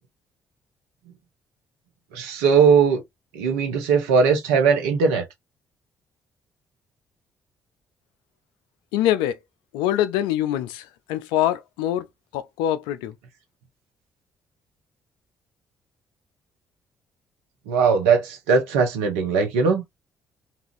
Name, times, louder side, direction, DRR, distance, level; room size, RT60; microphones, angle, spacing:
voice 1, 2.1-3.0 3.3-5.2 17.7-19.8, right 5 dB, 80° right, 0.7 m, -19 dB
voice 2, 8.9-9.4 9.7-12.1 12.3-13.1, left 12 dB, 75° left, 0.4 m, -24 dB
2.8 x 2.4 x 2.5 m
hypercardioid pair, 45°, 8 cm